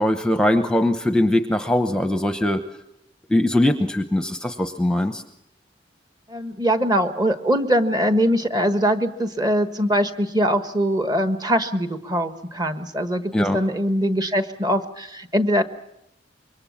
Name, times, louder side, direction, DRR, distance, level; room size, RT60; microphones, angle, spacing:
voice 1, 0.0-2.6 3.3-5.2 13.3-13.6, left 1 dB, 5° left, 8 dB, 0.9 m, -21 dB
voice 2, 6.3-15.6, equal, 25° right, 9 dB, 1.3 m, -22 dB
26.0 x 23.0 x 7.3 m, 0.80 s
head